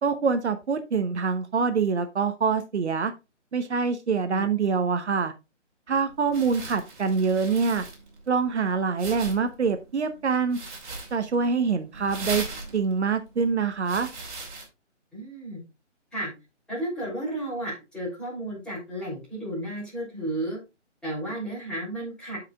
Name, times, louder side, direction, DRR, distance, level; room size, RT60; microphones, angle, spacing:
voice 1, 0.0-3.1 3.5-5.3 5.9-7.8 8.3-10.6 11.1-12.4 12.7-14.1, right 5 dB, 65° right, 9 dB, 0.9 m, -25 dB
sound 1, 5.9-14.7, right 3 dB, 40° right, 2.8 m, -40 dB
voice 2, 15.1-15.6 16.1-16.3 16.7-20.6 21.0-22.4, right 1 dB, ahead, -8 dB, 3.1 m, -33 dB
13.5 x 4.9 x 2.4 m, 0.26 s
hypercardioid pair, 160°, 36 cm